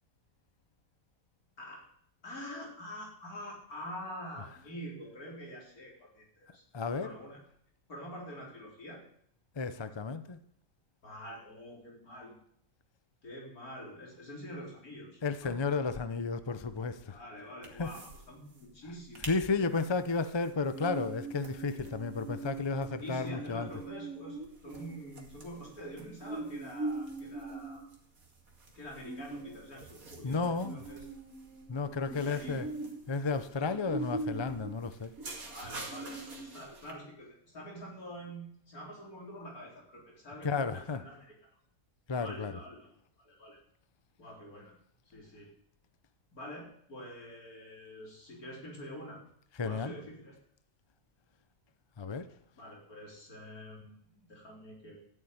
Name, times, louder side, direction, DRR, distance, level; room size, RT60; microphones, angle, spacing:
voice 1, 2.2-6.6 7.0-7.4 7.9-9.0 11.0-12.4 13.2-15.6 17.1-19.3 23.0-27.9 28.8-31.0 32.1-32.6 35.5-41.3 42.2-42.9 43.2-43.6 44.2-44.7 45.1-45.5 46.3-49.2 49.6-50.4 52.6-55.0, equal, 70° left, -2 dB, 4.6 m, -46 dB
voice 2, 6.7-7.1 9.5-10.4 15.2-17.2 17.7-17.9 19.3-23.7 30.2-30.8 31.7-32.7 33.1-35.1 40.4-41.0 42.1-42.6 49.6-49.9 52.0-52.3, left 4 dB, 30° left, 12 dB, 0.5 m, -33 dB
sound 1, 17.6-18.3 18.5-18.6 19.0-19.4 19.8-36.9, right 3 dB, 65° right, 2.7 m, -42 dB
13.5 x 8.6 x 9.6 m, 0.67 s
omnidirectional pair, 1.6 m